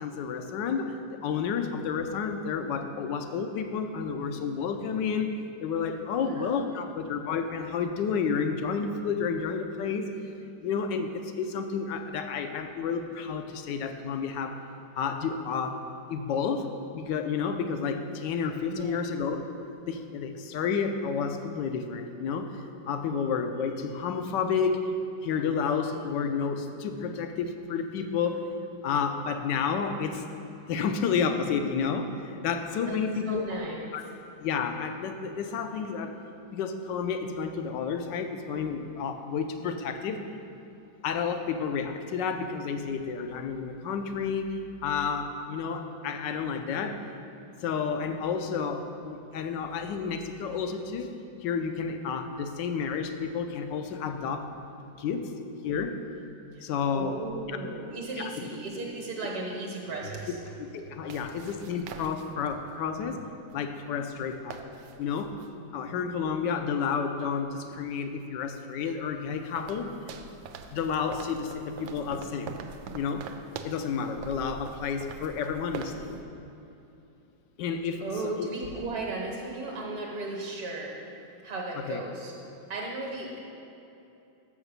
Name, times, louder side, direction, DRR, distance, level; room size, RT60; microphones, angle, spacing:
voice 1, 0.0-5.3 5.6-10.1 10.6-14.6 15.0-15.8 16.1-19.4 19.9-24.9 25.2-28.4 28.8-30.2 30.7-33.6 33.9-34.0 34.4-36.1 36.5-40.2 41.0-47.0 47.6-51.2 51.4-54.5 55.0-55.3 55.6-56.0 56.6-57.2 57.5-57.6 58.2-58.4 60.7-63.2 63.5-65.3 65.7-69.9 70.7-72.5 72.9-73.3 73.6-76.2 77.6-78.5 81.8-82.0, left 6 dB, 75° left, 7 dB, 1.2 m, -31 dB
voice 2, 6.1-6.9 18.7-19.1 32.8-33.9 54.9-55.1 56.5-60.4 61.0-61.4 78.0-81.0 81.4-82.3 82.7-83.4, right 2 dB, 60° right, -1 dB, 1.5 m, -36 dB
sound 1, 57.9-58.0 60.8-62.7 63.5-63.6 63.9-64.0 64.2-65.5 68.0-68.1 68.7-76.2, right 6 dB, 85° right, 1.3 m, -44 dB
6.5 x 6.0 x 6.7 m, 2.8 s
omnidirectional pair, 2.0 m